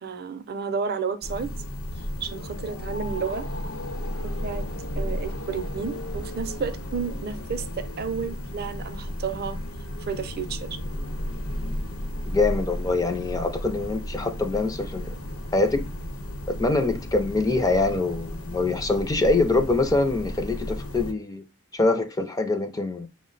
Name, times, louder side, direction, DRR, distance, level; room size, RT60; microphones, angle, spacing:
voice 1, 0.0-1.5 2.0-3.5 4.2-4.7 4.9-9.6 10.0-10.8, right 5 dB, 45° right, 0.5 m, -32 dB
sound 1, 1.2-21.1, left 1 dB, 75° left, 0.9 m, -34 dB
voice 2, 12.3-15.2 15.5-15.9 16.5-21.4 21.7-23.1, left 3 dB, 15° left, 0.4 m, -24 dB
5.7 x 2.1 x 3.8 m
head